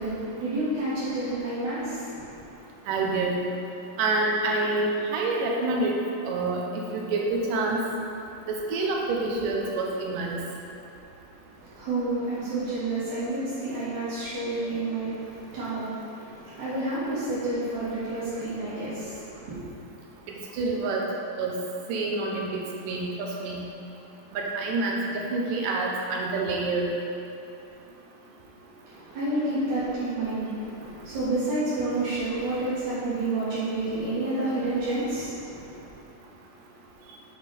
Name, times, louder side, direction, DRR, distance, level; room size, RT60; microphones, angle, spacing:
voice 1, 0.0-2.5 11.6-19.6 28.9-35.9, right 2 dB, 65° right, -13 dB, 3.0 m, -30 dB
voice 2, 2.9-3.4 4.0-5.9 6.3-6.6 6.9-7.8 8.5-10.4 20.6-21.0 21.4-21.6 21.9-23.6 24.3-25.0 25.3-26.9, right 3 dB, 85° right, -1 dB, 2.5 m, -27 dB
7.0 x 6.0 x 4.2 m, 2.7 s
omnidirectional pair, 3.7 m